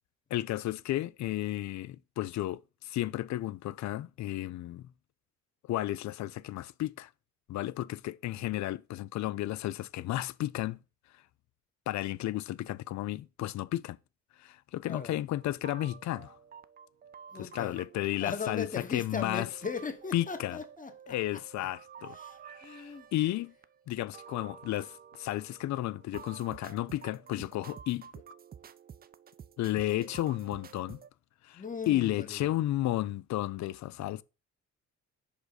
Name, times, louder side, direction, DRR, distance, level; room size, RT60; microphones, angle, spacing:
voice 1, 0.3-4.9 5.7-7.1 7.5-10.8 11.9-14.0 14.4-16.4 17.4-19.5 20.1-20.6 21.1-22.2 22.6-23.5 23.9-28.1 29.6-31.0 31.4-34.2, left 14 dB, 65° left, 0.5 m, -33 dB
voice 2, 14.9-15.2 17.3-17.8 18.2-21.4 22.1-23.1 31.5-32.5, left 5 dB, 25° left, 1.3 m, -39 dB
sound 1, 15.3-31.1, right 7 dB, 30° right, 0.4 m, -51 dB
5.1 x 5.0 x 4.0 m
cardioid pair, 90°, 30 cm